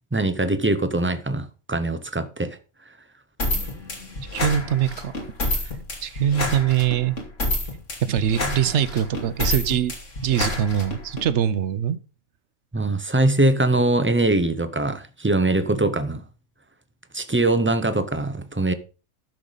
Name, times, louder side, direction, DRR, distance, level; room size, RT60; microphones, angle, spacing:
voice 1, 0.1-2.6 12.7-16.2 17.1-18.7, right 2 dB, 15° right, 0.4 m, -22 dB
sound 1, 3.4-11.2, left 2 dB, 65° left, 2.9 m, -28 dB
voice 2, 4.3-5.1 6.0-7.1 8.0-9.9 10.2-12.0, right 9 dB, 60° right, 0.9 m, -23 dB
12.0 x 6.7 x 4.0 m
omnidirectional pair, 1.4 m